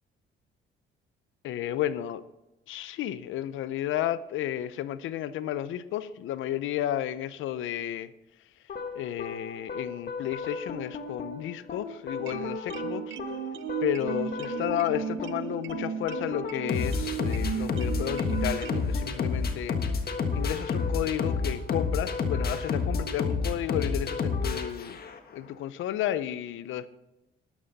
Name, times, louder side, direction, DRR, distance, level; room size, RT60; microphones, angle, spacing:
voice 1, 1.4-2.2 2.7-8.1 8.9-13.2 13.8-19.8 20.3-25.0 25.3-26.9, left 12 dB, 85° left, 15 dB, 0.7 m, -32 dB
sound 1, 8.7-25.3, left 4 dB, 50° left, 1.5 m, -31 dB
sound 2, 12.2-18.8, right 9 dB, 80° right, 0.7 m, -35 dB
12.5 x 11.5 x 4.1 m, 0.94 s
cardioid pair, 90°, 20 cm